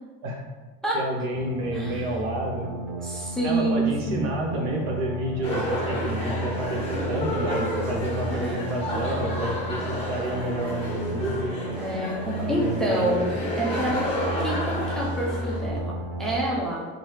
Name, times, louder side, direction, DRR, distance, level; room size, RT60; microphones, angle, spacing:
voice 1, 0.9-2.7 3.4-11.5 12.4-13.2, right 1 dB, 75° right, 0 dB, 1.0 m, -29 dB
sound 1, 1.3-16.3, right 1 dB, 45° right, 0.9 m, -34 dB
voice 2, 1.7-2.1 2.9-4.2 8.2-8.7 11.8-13.2 13.6-16.8, right 1 dB, ahead, -5 dB, 0.4 m, -28 dB
sound 2, 5.4-15.6, equal, 20° left, 1.1 m, -31 dB
4.5 x 2.7 x 3.2 m, 1.4 s
cardioid pair, 160°, 32 cm